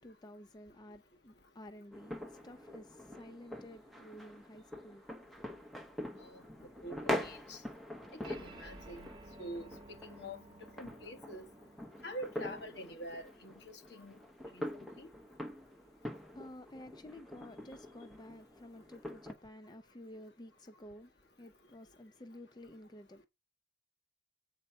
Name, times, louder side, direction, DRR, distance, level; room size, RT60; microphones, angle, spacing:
voice 1, 0.0-5.9 15.2-23.2, left 1 dB, 25° left, 0.5 m, -53 dB
sound 1, 1.9-19.3, left 1 dB, ahead, 1.0 m, -44 dB
voice 2, 6.2-7.6 8.3-9.1 9.4-11.5 12.0-14.2 14.5-15.1, equal, 75° left, 1.4 m, -46 dB
sound 2, 8.2-15.0, right 2 dB, 25° right, 1.2 m, -57 dB
7.9 x 4.4 x 5.6 m
head